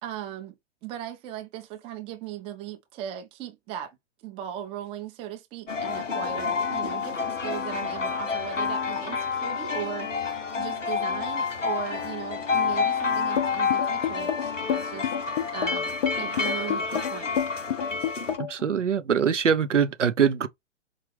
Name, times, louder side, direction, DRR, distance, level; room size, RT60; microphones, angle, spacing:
voice 1, 0.0-15.1 15.5-17.4, right 11 dB, 15° right, 0.6 m, -38 dB
sound 1, 5.7-18.4, left 5 dB, 85° left, 0.8 m, -29 dB
sound 2, 13.4-18.6, left 9 dB, 35° left, 0.6 m, -28 dB
voice 2, 18.4-20.5, right 7 dB, 80° right, 0.7 m, -23 dB
4.8 x 2.4 x 3.3 m
figure-of-eight pair, 115°, 36 cm